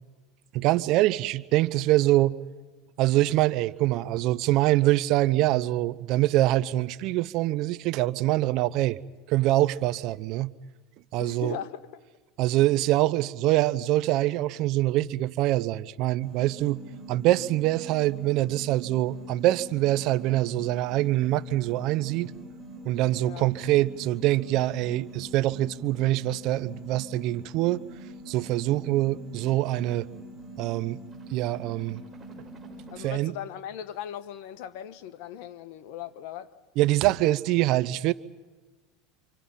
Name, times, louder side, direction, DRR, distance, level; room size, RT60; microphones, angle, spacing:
voice 1, 0.5-2.3 3.0-9.0 9.3-10.5 11.1-11.6 12.4-16.8 17.1-22.3 22.9-27.8 28.3-30.1 30.6-31.0 31.3-32.0 33.0-33.3 36.8-38.1, right 16 dB, 55° right, 0.7 m, -24 dB
voice 2, 11.2-12.0 23.2-23.5 32.9-36.5, left 10 dB, 65° left, 1.4 m, -38 dB
sound 1, 16.2-33.0, right 1 dB, 15° right, 7.8 m, -44 dB
28.5 x 26.0 x 5.7 m
supercardioid pair, 110°, 0 cm